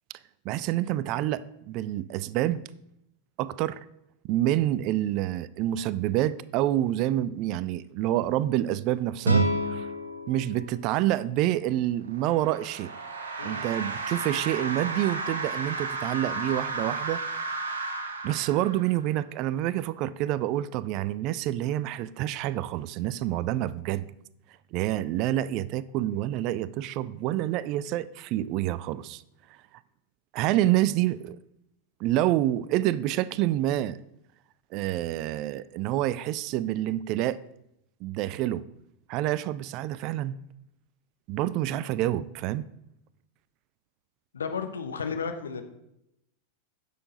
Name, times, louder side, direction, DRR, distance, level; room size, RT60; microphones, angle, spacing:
voice 1, 0.4-2.6 3.4-3.8 4.2-9.9 10.3-12.9 13.4-17.2 18.2-24.0 24.7-29.2 30.3-31.4 32.0-34.0 34.7-37.4 38.0-38.7 39.1-40.4 41.3-42.7, right 13 dB, 40° right, 0.4 m, -27 dB
sound 1, 9.2-12.3, right 2 dB, 85° right, 0.9 m, -29 dB
sound 2, 12.0-19.1, right 3 dB, 65° right, 1.1 m, -34 dB
voice 2, 44.3-45.6, left 5 dB, 70° left, 1.0 m, -33 dB
10.0 x 6.7 x 4.0 m
figure-of-eight pair, 90°, 0 cm